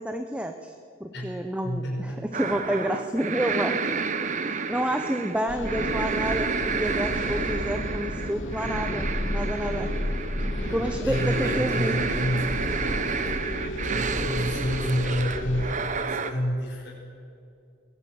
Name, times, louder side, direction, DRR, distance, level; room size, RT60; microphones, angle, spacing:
voice 1, 0.0-3.8 4.4-9.9 10.7-12.0, right 1 dB, 5° right, 6 dB, 0.8 m, -29 dB
voice 2, 1.1-2.3 10.7-16.9, equal, 60° left, -2 dB, 5.5 m, -30 dB
sound 1, 2.3-16.3, right 5 dB, 40° right, 1.0 m, -30 dB
sound 2, 5.5-15.7, left 1 dB, 80° left, 2.8 m, -32 dB
22.5 x 17.0 x 7.7 m, 2.4 s
head